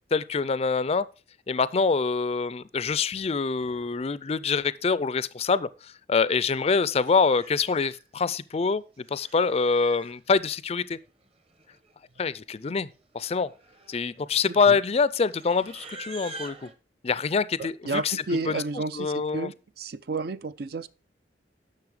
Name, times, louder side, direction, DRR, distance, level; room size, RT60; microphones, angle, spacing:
voice 1, 0.1-1.1 1.5-5.7 6.1-8.8 9.1-11.0 12.2-12.9 13.1-13.5 13.9-16.6 17.0-18.1 18.5-18.6 19.0-19.5, left 5 dB, 35° left, 0.4 m, -25 dB
Livestock farm animals working animals, 6.5-6.7 7.1-8.0 8.9-10.2 11.2-11.3 11.5-11.9 12.2-12.5 13.1-16.7, right 2 dB, 35° right, 1.2 m, -46 dB
voice 2, 14.5-14.8 17.6-20.9, right 3 dB, 60° right, 0.5 m, -32 dB
10.5 x 6.5 x 4.8 m
head